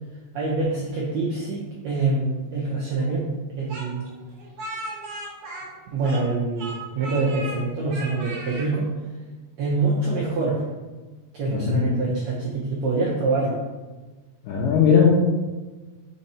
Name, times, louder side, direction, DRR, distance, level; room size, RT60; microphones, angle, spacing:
voice 1, 0.3-3.3 3.5-4.1 5.9-8.9 9.6-10.6 11.3-13.6, right 3 dB, 80° right, -5 dB, 1.5 m, -25 dB
Speech, 3.7-6.3 6.6-7.6 7.9-8.7, right 2 dB, 55° right, 1.6 m, -36 dB
voice 2, 11.5-12.0 14.5-15.1, left 7 dB, 75° left, 0 dB, 2.3 m, -19 dB
5.6 x 4.2 x 4.2 m, 1.3 s
omnidirectional pair, 4.2 m